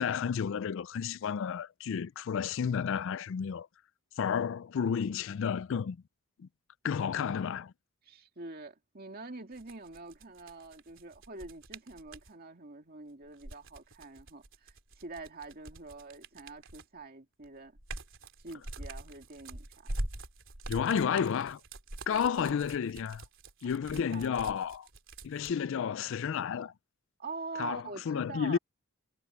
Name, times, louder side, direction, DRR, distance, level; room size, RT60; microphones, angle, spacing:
voice 1, 0.0-3.7 4.2-6.0 6.4-6.5 6.8-7.7 20.7-21.6 22.1-23.2 23.6-24.9 25.2-26.7 27.6-28.6, left 7 dB, 60° left, 0.3 m, -31 dB
voice 2, 8.0-17.8 18.4-19.9 22.1-22.5 23.6-24.3 27.2-28.6, right 3 dB, 40° right, 2.3 m, -45 dB
sound 1, 9.5-12.3 13.2-17.0 17.4-25.5, right 1 dB, 55° right, 3.6 m, -44 dB
head